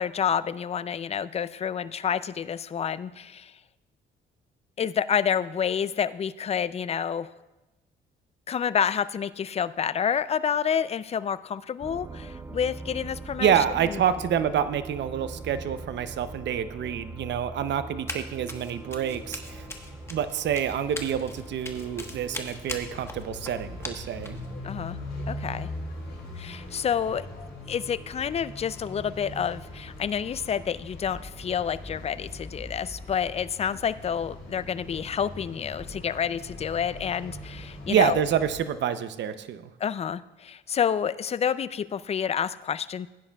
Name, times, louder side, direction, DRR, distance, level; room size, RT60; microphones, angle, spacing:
voice 1, 0.0-3.5 4.8-7.3 8.5-13.5 13.8-14.0 24.6-25.0 25.3-25.7 26.4-27.2 27.7-38.2 39.8-43.1, left 8 dB, 30° left, 16 dB, 0.4 m, -29 dB
sound 1, 11.8-30.7, right 2 dB, 15° right, 0.6 m, -44 dB
voice 2, 13.4-19.7 20.1-24.4 37.9-39.7, right 9 dB, 65° right, 12 dB, 0.6 m, -27 dB
Run, 18.1-18.2 18.5-24.5, left 2 dB, 10° left, 1.2 m, -38 dB
sound 2, 19.0-38.6, left 1 dB, 55° left, 3.9 m, -41 dB
16.0 x 9.6 x 2.3 m, 1.0 s
cardioid pair, 90°, 20 cm